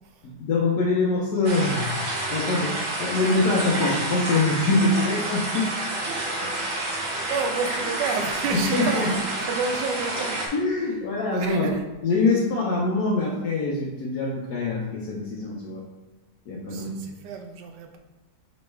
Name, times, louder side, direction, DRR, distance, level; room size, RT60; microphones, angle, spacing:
voice 1, 0.2-1.9 2.3-5.7 8.5-9.1 10.5-11.7 12.0-15.8 16.5-16.9, left 3 dB, 70° left, -4 dB, 1.2 m, -24 dB
sound 1, 1.4-10.5, right 1 dB, 55° right, 1.1 m, -29 dB
voice 2, 6.8-10.4 11.3-11.8 16.7-18.0, right 5 dB, 80° right, 5 dB, 1.2 m, -31 dB
5.2 x 3.1 x 3.2 m, 1.1 s
omnidirectional pair, 1.8 m